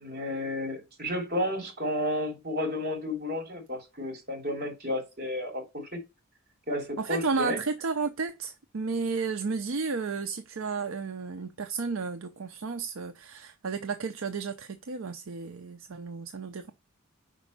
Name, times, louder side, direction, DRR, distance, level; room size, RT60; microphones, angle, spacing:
voice 1, 0.0-6.0 6.7-7.6, left 1 dB, 45° right, 3.2 m, -32 dB
voice 2, 7.0-16.7, right 4 dB, 70° right, 0.6 m, -32 dB
5.3 x 5.1 x 6.5 m
head